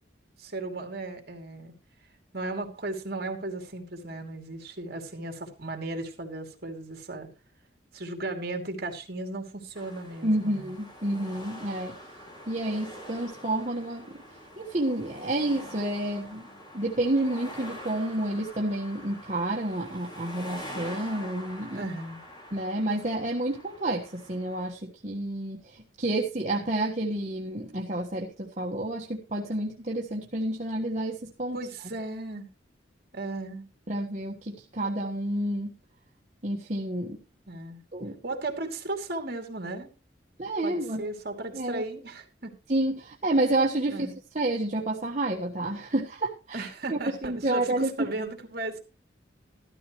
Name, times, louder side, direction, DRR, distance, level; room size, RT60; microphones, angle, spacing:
voice 1, 0.4-1.7 2.3-7.3 7.9-10.7 21.7-22.2 31.5-32.5 33.1-33.7 37.5-37.8 38.2-39.9 40.6-42.5 43.9-44.1 46.5-48.8, right 2 dB, 55° right, 4 dB, 2.8 m, -36 dB
sound 1, 9.8-24.7, equal, 25° left, 4.4 m, -45 dB
voice 2, 10.2-12.0 12.5-14.2 14.6-16.5 16.7-21.8 22.5-31.6 33.9-35.7 36.4-37.2 37.9-38.2 40.4-41.0 41.5-41.8 42.7-48.1, right 1 dB, 40° right, -2 dB, 1.4 m, -29 dB
13.5 x 13.0 x 3.1 m, 0.29 s
head